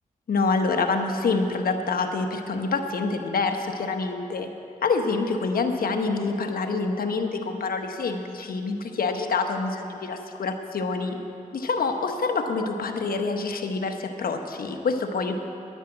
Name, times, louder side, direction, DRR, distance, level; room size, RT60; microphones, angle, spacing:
voice 1, 0.3-4.5 4.8-11.2 11.5-15.4, left 4 dB, 75° left, 5 dB, 1.1 m, -26 dB
11.0 x 10.0 x 7.9 m, 2.7 s
cardioid pair, 60°, 15 cm